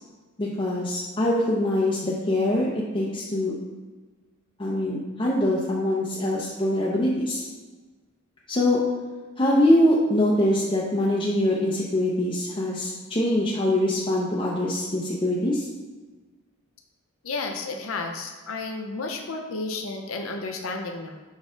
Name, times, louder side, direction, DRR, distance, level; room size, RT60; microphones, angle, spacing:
voice 1, 0.4-3.5 4.6-7.4 8.5-8.8 9.4-15.7, left 1 dB, 25° left, -5 dB, 0.6 m, -23 dB
voice 2, 17.2-21.2, left 3 dB, 75° left, 3 dB, 0.6 m, -32 dB
6.0 x 4.2 x 3.8 m, 1.3 s
head